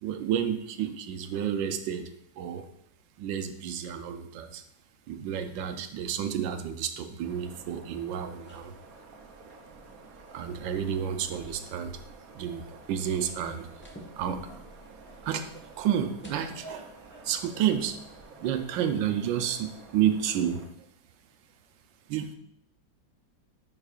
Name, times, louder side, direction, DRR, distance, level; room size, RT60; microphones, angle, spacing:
voice 1, 0.0-2.1 2.4-2.6 3.2-4.6 5.1-8.7 10.3-12.0 12.3-12.6 12.9-13.7 14.2-14.4 15.2-16.8 17.2-18.0 18.4-20.7 22.1-22.3, right 9 dB, 80° right, 8 dB, 1.3 m, -30 dB
sound 1, 7.2-20.7, right 3 dB, 60° right, 1.1 m, -51 dB
sound 2, 8.3-18.7, right 1 dB, 10° left, 0.7 m, -51 dB
9.8 x 5.5 x 2.4 m, 0.72 s
omnidirectional pair, 2.1 m